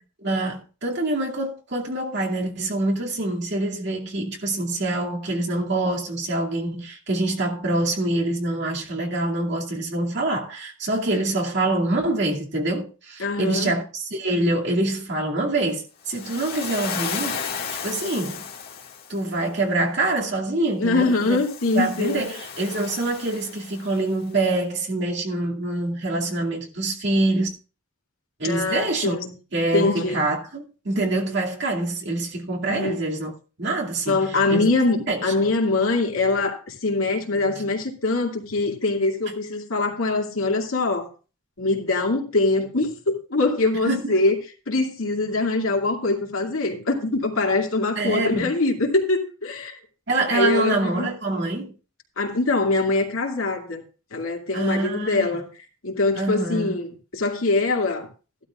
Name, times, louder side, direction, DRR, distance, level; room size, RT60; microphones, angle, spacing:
voice 1, 0.2-17.4 17.8-18.4 19.1-21.4 21.7-27.5 28.4-29.2 29.5-34.2 34.5-34.7 35.1-35.2 43.9-44.1 47.9-48.5 50.1-51.7 54.5-55.4 56.1-56.8, right 2 dB, 55° right, 2.4 m, -25 dB
voice 2, 13.2-13.7 20.8-22.2 28.4-29.3 29.7-30.3 32.7-33.0 34.1-41.1 41.6-44.4 44.7-49.8 50.3-51.1 52.2-53.8 54.1-55.5 55.8-56.9 57.1-58.1, left 3 dB, 80° left, 2.4 m, -23 dB
Waves surf, 16.1-19.3 21.1-24.1, left 6 dB, 45° left, 2.0 m, -34 dB
15.0 x 12.0 x 2.4 m
head